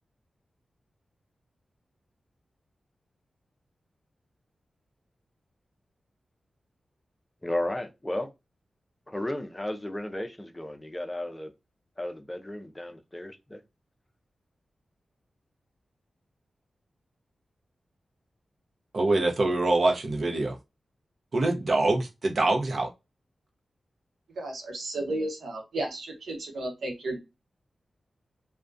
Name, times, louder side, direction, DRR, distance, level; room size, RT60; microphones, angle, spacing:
voice 1, 7.4-8.3 9.1-11.5 12.0-13.6, left 1 dB, 15° left, 0.5 m, -34 dB
voice 2, 18.9-20.5 21.3-22.9, right 2 dB, 60° right, 0.6 m, -24 dB
voice 3, 24.4-27.2, right 2 dB, 90° right, 0.9 m, -33 dB
2.3 x 2.2 x 2.5 m
cardioid pair, 70°, 0 cm